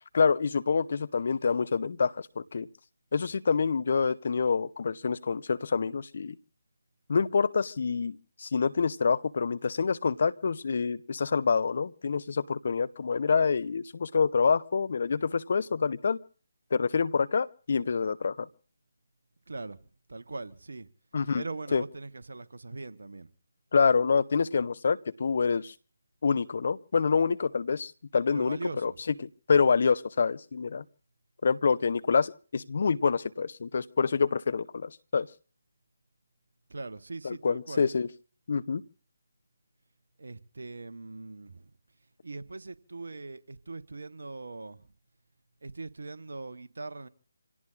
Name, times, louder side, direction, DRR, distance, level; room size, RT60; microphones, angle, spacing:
voice 1, 0.1-2.7 3.1-6.3 7.1-16.2 16.7-18.5 21.1-21.5 21.7-21.8 23.7-25.7 26.2-30.8 31.4-35.3 37.2-38.1 38.5-38.8, left 5 dB, 50° left, 0.8 m, -27 dB
voice 2, 20.1-20.9 21.3-23.3 28.3-29.0 36.7-37.9 40.2-41.5 42.2-44.8 45.6-47.1, right 3 dB, 65° right, 1.2 m, -40 dB
27.5 x 17.0 x 2.5 m
figure-of-eight pair, 150°, 0 cm